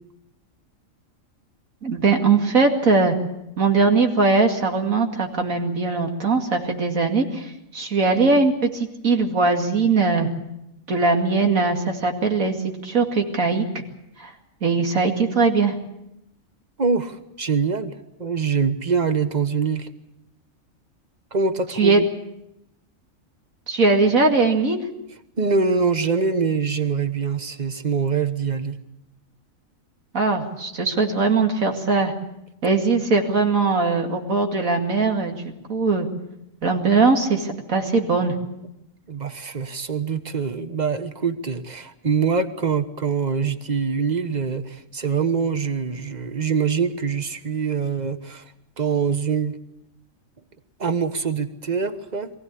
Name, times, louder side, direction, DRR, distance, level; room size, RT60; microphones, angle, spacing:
voice 1, 1.8-3.1 3.6-10.3 10.9-13.7 14.2-14.3 14.6-15.7 21.8-22.0 23.7-24.8 30.1-32.1 32.6-35.4 35.7-36.1 36.6-38.4, right 4 dB, 90° right, 3 dB, 2.7 m, -20 dB
voice 2, 16.8-19.9 21.3-22.1 25.4-28.8 39.1-48.4 48.8-49.6 50.8-52.3, right 5 dB, 35° right, 10 dB, 1.2 m, -24 dB
23.0 x 16.0 x 8.4 m, 0.86 s
omnidirectional pair, 1.4 m